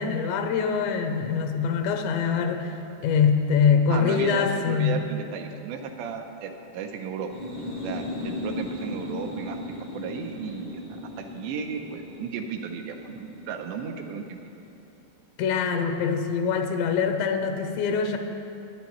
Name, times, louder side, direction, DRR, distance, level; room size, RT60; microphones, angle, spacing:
voice 1, 0.0-2.7 3.0-5.0 15.4-18.2, left 6 dB, 85° left, 6 dB, 2.9 m, -24 dB
voice 2, 3.9-7.3 7.8-10.8 11.2-14.4, right 6 dB, 85° right, 4 dB, 2.7 m, -34 dB
sound 1, 7.2-14.7, left 1 dB, 45° left, 0.7 m, -37 dB
20.5 x 9.2 x 3.1 m, 2.7 s
omnidirectional pair, 5.0 m